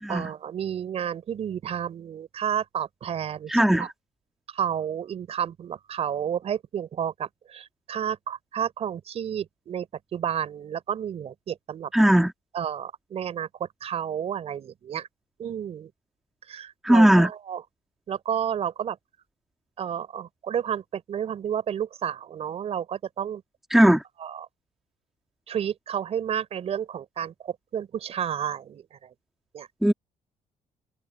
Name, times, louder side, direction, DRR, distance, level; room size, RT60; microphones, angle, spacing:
voice 1, 0.1-3.9 4.5-9.9 10.1-11.9 12.5-15.1 15.4-15.9 16.5-17.6 18.1-19.0 19.8-23.4 24.2-24.5 25.5-29.1 29.5-29.7, right 9 dB, 50° right, 4.8 m, -31 dB
voice 2, 3.5-3.9 11.9-12.3 16.8-17.3 23.7-24.0 29.8-29.9, right 1 dB, ahead, 1.8 m, -18 dB
cardioid pair, 130°, 14 cm